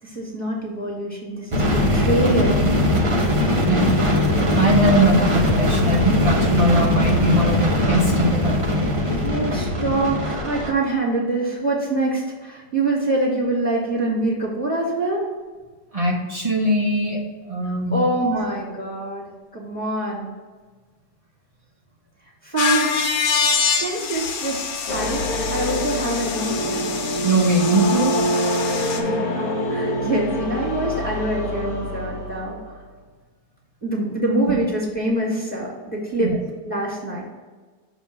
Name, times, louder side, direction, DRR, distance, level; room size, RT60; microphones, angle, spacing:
voice 1, 0.0-2.7 9.2-15.3 17.7-20.3 22.4-23.0 23.8-25.2 25.5-26.9 28.9-32.6 33.8-36.3 36.6-37.2, right 2 dB, 5° left, -3 dB, 1.7 m, -25 dB
sound 1, 1.5-10.7, left 1 dB, 25° right, 0.7 m, -20 dB
voice 2, 4.5-8.8 15.9-18.0 27.2-28.2 36.2-36.4, right 1 dB, 65° right, -3 dB, 0.3 m, -21 dB
sound 2, 22.6-29.0, left 5 dB, 90° left, 1.5 m, -25 dB
sound 3, 24.9-32.8, equal, 55° left, 1.0 m, -25 dB
7.0 x 3.0 x 5.8 m, 1.4 s
omnidirectional pair, 2.0 m